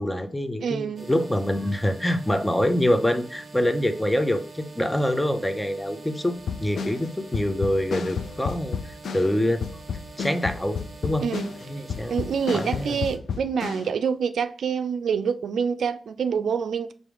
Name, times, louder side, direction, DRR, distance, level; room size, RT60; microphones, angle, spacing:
voice 1, 0.0-9.6 10.2-11.3 11.7-12.1 12.5-13.0, left 1 dB, 10° left, 0.5 m, -25 dB
voice 2, 0.6-1.1 11.2-11.5 12.1-16.9, right 6 dB, 85° right, 0.3 m, -26 dB
sound 1, 1.0-13.2, right 3 dB, 40° right, 0.7 m, -45 dB
sound 2, 6.4-13.9, left 6 dB, 85° left, 0.4 m, -32 dB
4.6 x 2.6 x 3.4 m
cardioid pair, 75°, 0 cm